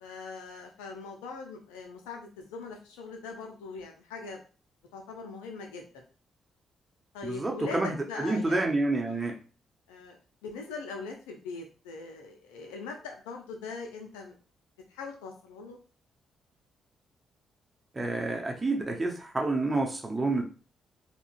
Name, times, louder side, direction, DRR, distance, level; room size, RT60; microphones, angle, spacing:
voice 1, 0.0-4.4 4.9-5.9 7.1-8.7 9.1-9.2 9.9-10.2 10.4-14.4 14.9-15.8, left 4 dB, 80° left, 2 dB, 0.4 m, -41 dB
voice 2, 7.2-9.4 17.9-20.4, right 2 dB, 25° right, 1 dB, 0.8 m, -29 dB
3.7 x 2.1 x 2.4 m, 0.36 s
hypercardioid pair, 45°, 0 cm